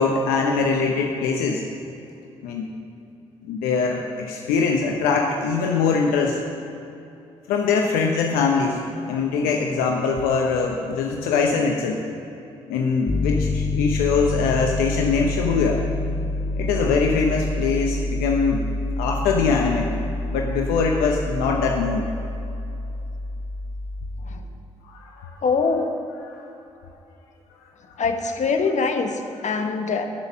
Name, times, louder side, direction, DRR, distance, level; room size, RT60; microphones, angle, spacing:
voice 1, 0.0-1.6 2.4-2.7 3.4-6.4 7.5-12.0 12.7-15.8 16.6-18.7 19.0-19.9 20.3-22.1 24.9-25.4 26.2-26.5 27.9-28.0, left 5 dB, 80° left, 1 dB, 0.9 m, -22 dB
Piano, 13.1-24.4, left 2 dB, 30° left, 1.1 m, -27 dB
voice 2, 25.4-25.9 28.0-29.1 29.4-30.1, left 4 dB, 55° left, 5 dB, 1.3 m, -23 dB
14.5 x 6.6 x 6.2 m, 2.8 s
hypercardioid pair, 45°, 15 cm